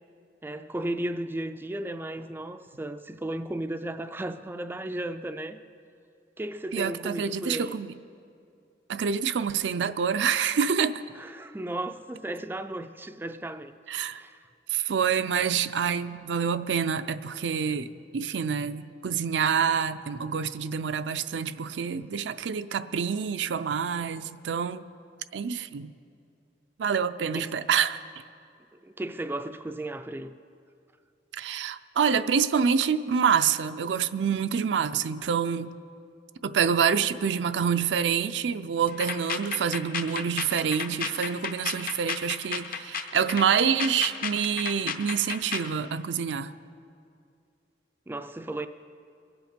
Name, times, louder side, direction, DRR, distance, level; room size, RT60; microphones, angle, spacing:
voice 1, 0.4-5.6 6.4-7.8 11.1-13.7 14.1-14.5 27.3-27.5 28.8-30.3 48.1-48.7, right 1 dB, 10° right, 0.3 m, -35 dB
voice 2, 6.7-7.9 8.9-11.0 13.9-14.2 14.7-24.9 25.3-25.9 26.8-28.0 31.4-35.7 36.4-46.5, right 7 dB, 75° right, 0.4 m, -27 dB
sound 1, 38.9-45.7, left 6 dB, 50° left, 0.8 m, -33 dB
22.5 x 8.0 x 5.1 m
head